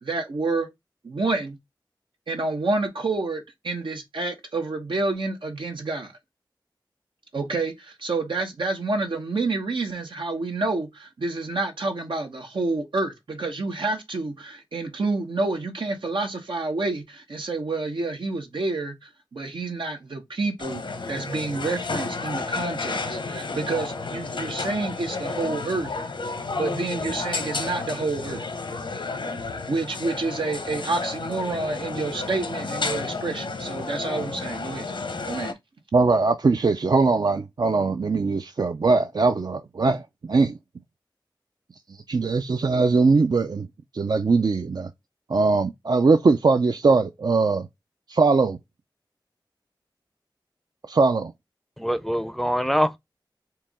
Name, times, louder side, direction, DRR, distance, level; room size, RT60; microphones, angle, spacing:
voice 1, 0.0-0.7 1.0-1.6 2.3-6.1 7.3-25.9 26.6-28.5 29.7-34.9 35.2-35.6, right 3 dB, 90° right, 1.2 m, -28 dB
sound 1, 20.6-35.5, left 3 dB, 90° left, 1.0 m, -32 dB
voice 2, 35.9-40.5 41.9-43.7 43.9-44.9 45.3-47.7 48.1-48.6 50.9-51.3, right 3 dB, 55° right, 0.4 m, -21 dB
voice 3, 51.8-53.0, equal, 5° left, 0.5 m, -24 dB
4.6 x 3.1 x 3.5 m
wide cardioid pair, 75°, 8 cm